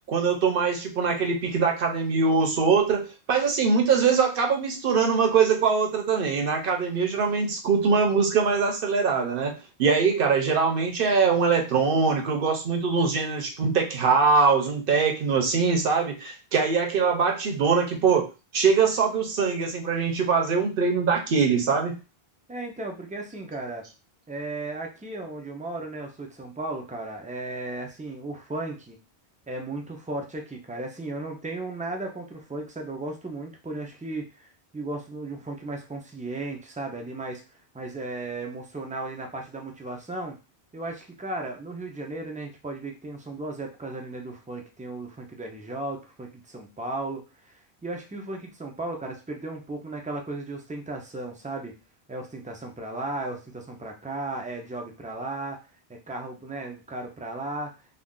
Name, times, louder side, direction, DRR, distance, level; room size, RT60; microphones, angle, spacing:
voice 1, 0.1-9.5 9.8-18.3 18.5-22.0, right 5 dB, 65° right, 3 dB, 0.8 m, -22 dB
voice 2, 22.5-23.9 24.3-29.0 29.5-40.4 40.7-51.7 52.1-55.6 55.9-57.7, right 2 dB, 15° right, 2 dB, 0.3 m, -35 dB
2.5 x 2.3 x 3.6 m, 0.29 s
omnidirectional pair, 1.0 m